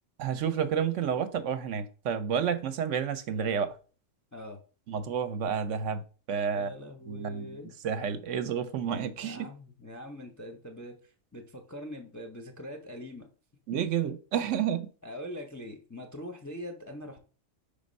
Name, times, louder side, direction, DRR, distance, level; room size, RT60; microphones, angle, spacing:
voice 1, 0.2-3.8 4.9-6.0 6.3-6.7 7.1-7.6 7.8-9.5 13.7-14.9, right 7 dB, 70° right, 0.9 m, -30 dB
voice 2, 6.5-7.8 9.2-13.3 15.0-17.2, equal, 20° left, 0.5 m, -43 dB
5.2 x 3.5 x 5.2 m
omnidirectional pair, 1.4 m